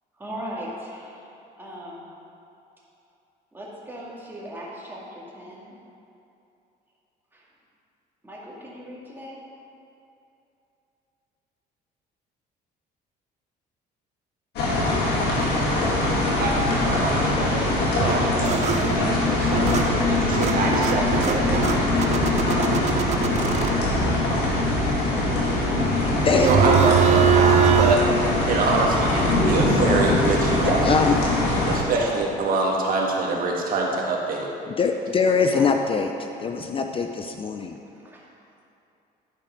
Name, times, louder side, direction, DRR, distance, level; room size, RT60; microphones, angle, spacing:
voice 1, 0.2-2.1 3.5-5.7 7.3-7.5 8.2-9.4 22.4-22.7 23.0-25.0 31.9-32.1 35.4-35.7 36.1-36.4 37.9-38.2, equal, 10° right, -5 dB, 2.2 m, -39 dB
sound 1, 14.6-31.8, left 2 dB, 80° left, 2.2 m, -22 dB
voice 2, 16.3-21.5 26.3-28.0 28.5-30.9 31.7-34.5, right 3 dB, 60° right, -1 dB, 1.4 m, -25 dB
sound 2, 17.0-17.6 18.0-28.0, right 8 dB, 45° right, 0.4 m, -24 dB
voice 3, 25.9-26.5 30.6-31.2 34.7-36.1 36.4-37.8, left 5 dB, 30° left, 5 dB, 0.5 m, -23 dB
11.0 x 5.2 x 5.2 m, 2.8 s
cardioid pair, 110°, 17 cm